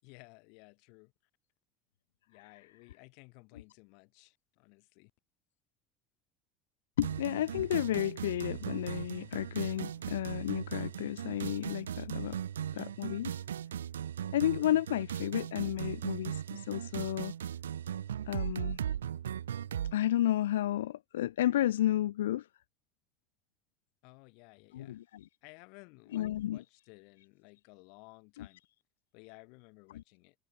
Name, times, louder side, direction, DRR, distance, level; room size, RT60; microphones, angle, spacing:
voice 1, 0.0-1.1 2.3-5.1 24.0-25.0 25.4-28.6 29.1-30.4, left 33 dB, 65° left, 7.5 m, -56 dB
voice 2, 7.0-12.4 12.7-13.4 14.3-17.3 18.3-18.8 19.9-22.4 24.7-25.3 26.1-26.6 28.4-28.5 29.9-30.0, left 13 dB, 80° left, 1.1 m, -32 dB
sound 1, 7.0-19.9, right 9 dB, 85° right, 0.6 m, -38 dB
hypercardioid pair, 80°, 0 cm